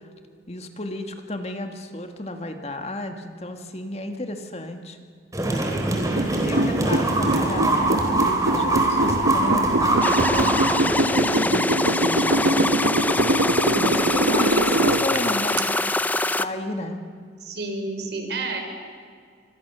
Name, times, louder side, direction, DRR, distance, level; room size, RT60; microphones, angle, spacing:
voice 1, 0.5-5.0 6.3-12.7 13.8-15.8 16.4-17.0, left 1 dB, 35° left, 6 dB, 1.7 m, -33 dB
sound 1, 5.3-11.3, right 2 dB, 20° right, 3.8 m, -23 dB
voice 2, 5.7-6.3 17.4-18.6, right 3 dB, 65° right, 4 dB, 4.7 m, -31 dB
sound 2, 6.2-15.6, right 1 dB, 90° right, 1.2 m, -23 dB
sound 3, 10.0-16.5, left 2 dB, 10° left, 0.6 m, -24 dB
27.5 x 25.0 x 6.8 m, 2.1 s
head